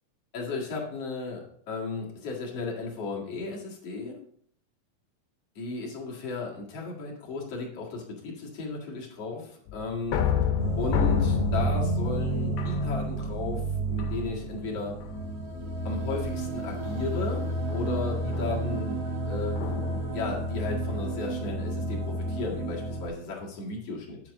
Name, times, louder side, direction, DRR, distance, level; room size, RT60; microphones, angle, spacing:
voice 1, 0.3-4.2 5.6-10.3 10.8-15.0 15.8-19.8 20.1-24.2, left 3 dB, 50° left, -3 dB, 2.6 m, -35 dB
sound 1, 9.7-13.4 14.0-14.5 15.0-15.4 16.8-20.2, left 8 dB, 80° left, 2.5 m, -31 dB
sound 2, 10.6-23.1, right 2 dB, 50° right, 2.7 m, -31 dB
9.5 x 7.4 x 3.6 m, 0.63 s
omnidirectional pair, 3.9 m